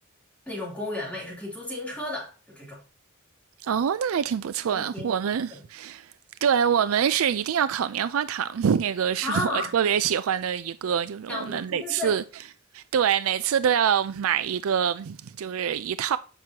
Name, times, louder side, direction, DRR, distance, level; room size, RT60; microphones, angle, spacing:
voice 1, 0.5-2.8 4.7-5.1 9.2-9.7 11.3-12.1, left 2 dB, 5° left, 3.3 m, -33 dB
voice 2, 3.6-6.1 6.4-12.2 12.7-16.2, right 8 dB, 85° right, 0.4 m, -25 dB
8.9 x 6.1 x 2.9 m
head